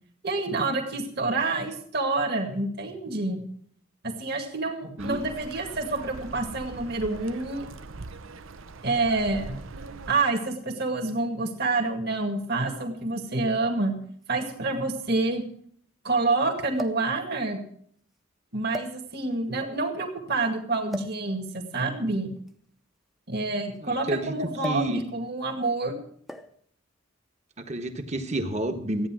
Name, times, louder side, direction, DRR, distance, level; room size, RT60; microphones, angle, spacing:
voice 1, 0.2-3.4 4.0-7.7 8.8-9.6 10.1-13.9 14.3-15.4 16.0-17.6 18.5-22.4 23.3-26.0, right 3 dB, 50° right, 3 dB, 2.1 m, -28 dB
sound 1, 5.0-10.1, right 3 dB, 75° right, 0.8 m, -41 dB
sound 2, 13.0-13.1 14.2-14.3 14.6-14.7 16.7-17.1 18.0-18.2 18.7-19.4 20.9-21.2 22.4-24.0 24.6-25.0 25.2-25.5 26.3-26.7 27.6-27.9, left 1 dB, ahead, 0.7 m, -39 dB
voice 2, 23.8-24.3 24.6-25.0 27.6-29.1, right 1 dB, 35° right, 6 dB, 1.3 m, -29 dB
14.5 x 9.4 x 6.2 m, 0.62 s
head